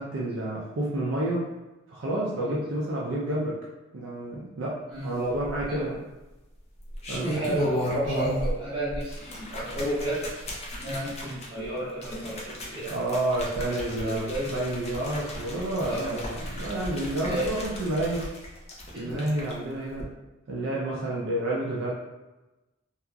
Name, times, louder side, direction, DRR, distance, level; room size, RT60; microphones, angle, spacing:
voice 1, 0.0-1.5 1.9-3.6 3.9-6.0 7.1-7.4 12.9-18.3 19.0-20.1 20.5-21.9, right 1 dB, 65° right, -4 dB, 0.4 m, -29 dB
sound 1, 5.3-5.9 6.8-8.6 8.9-19.5 19.9-20.0, equal, 30° left, 0.5 m, -35 dB
voice 2, 7.3-10.2 10.7-12.9 13.7-14.5 15.9-16.2 17.2-17.5 18.9-19.2 20.8-20.9, right 1 dB, 20° right, -12 dB, 1.4 m, -32 dB
2.8 x 2.4 x 2.3 m, 1.1 s
head